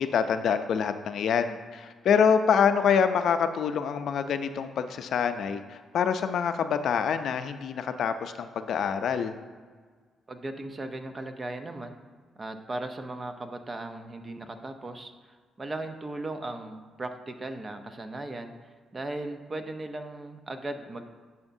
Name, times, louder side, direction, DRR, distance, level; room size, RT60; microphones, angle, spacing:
voice 1, 0.0-9.3, left 7 dB, 65° left, 9 dB, 0.4 m, -26 dB
voice 2, 10.3-12.0 12.4-21.0, right 2 dB, 30° right, 7 dB, 0.7 m, -37 dB
11.0 x 5.7 x 2.7 m, 1.5 s
cardioid pair, 90°, 0 cm